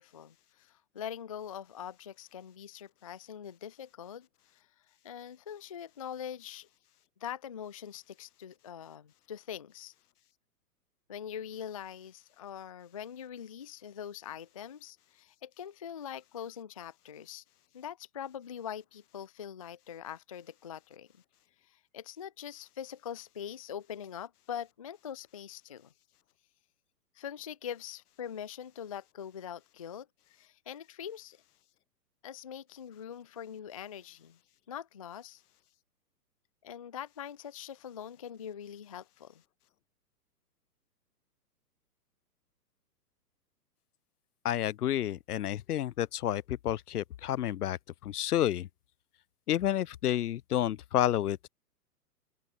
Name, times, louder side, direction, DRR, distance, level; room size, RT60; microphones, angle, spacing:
voice 1, 0.0-4.3 4.5-4.7 5.0-6.7 7.2-9.9 11.1-17.4 17.7-21.1 21.7-25.9 27.2-31.4 32.2-34.4 34.7-35.4 36.6-39.4, left 9 dB, 25° left, 0.3 m, -43 dB
voice 2, 44.4-48.7 49.5-51.5, left 12 dB, 70° left, 0.8 m, -30 dB
open air
hypercardioid pair, 130°, 48 cm